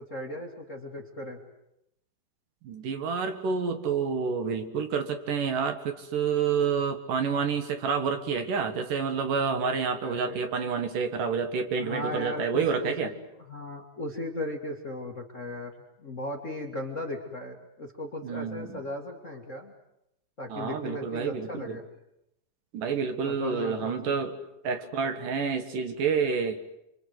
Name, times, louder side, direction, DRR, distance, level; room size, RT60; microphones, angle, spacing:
voice 1, 0.0-1.4 10.0-10.4 11.8-15.7 16.0-19.7 20.4-21.8 23.2-24.1, left 1 dB, 30° left, 2 dB, 1.7 m, -37 dB
voice 2, 2.6-13.1 18.2-18.8 20.5-21.8 22.7-24.4 24.6-26.6, right 6 dB, 65° right, 8 dB, 3.1 m, -29 dB
28.0 x 24.5 x 8.0 m, 0.82 s
omnidirectional pair, 4.2 m